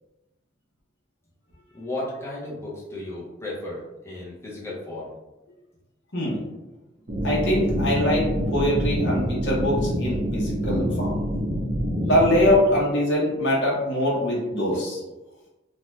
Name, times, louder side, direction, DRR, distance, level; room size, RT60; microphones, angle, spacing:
voice 1, 1.7-5.1, left 1 dB, 15° left, -6 dB, 0.6 m, -34 dB
sound 1, 7.1-12.6, equal, 45° right, 0.6 m, -26 dB
voice 2, 7.2-11.2 12.0-15.0, left 1 dB, 65° left, -5 dB, 0.8 m, -23 dB
2.5 x 2.2 x 3.1 m, 1.0 s
head